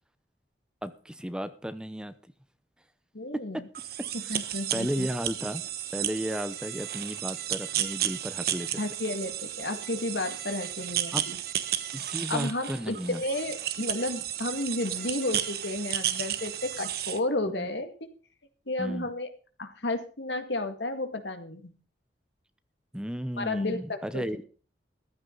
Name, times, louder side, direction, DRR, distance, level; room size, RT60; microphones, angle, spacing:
voice 1, 0.8-2.1 3.3-3.6 4.7-5.6 5.9-8.8 11.1-11.3 11.9-13.2 17.6-17.7 18.8-19.1 22.9-24.4, equal, 5° right, 11 dB, 0.8 m, -34 dB
voice 2, 3.1-3.7 4.3-5.1 6.3-6.4 8.8-11.4 12.3-17.9 18.7-19.3 19.6-21.7 23.4-24.2, left 2 dB, 85° left, 7 dB, 2.1 m, -32 dB
sound 1, 3.7-17.2, right 11 dB, 60° right, 1.2 m, -33 dB
14.5 x 13.0 x 4.0 m, 0.39 s
head